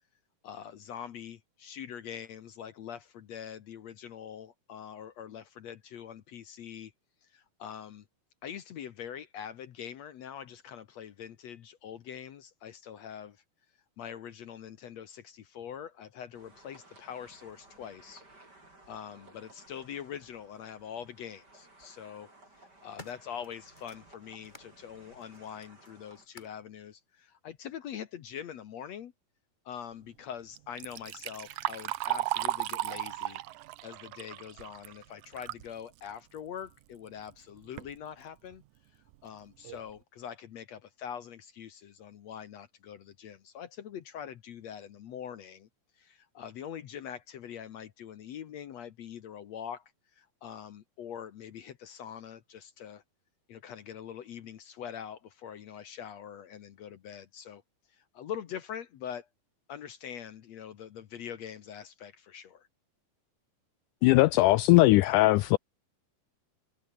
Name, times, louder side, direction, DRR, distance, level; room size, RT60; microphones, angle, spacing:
voice 1, 0.4-6.9 7.2-8.1 8.4-13.4 14.0-18.2 18.9-29.1 29.7-33.4 33.8-38.6 39.2-45.7 46.0-53.0 53.5-57.6 57.9-59.3 59.7-62.7, left 8 dB, 60° left, 2.0 m, -43 dB
sound 1, 16.3-26.3, right 2 dB, 25° right, 8.3 m, -58 dB
sound 2, 20.3-20.4 21.5-21.9 22.4-24.7 25.2-26.7 27.5-27.6, left 2 dB, 15° left, 2.3 m, -54 dB
Liquid, 30.6-35.7 36.1-36.2 37.1-37.2 37.6-37.9 38.5-38.6 39.1-39.2 39.6-39.9, right 16 dB, 75° right, 1.9 m, -35 dB
voice 2, 64.0-65.6, left 19 dB, 85° left, 1.8 m, -20 dB
omnidirectional pair, 4.1 m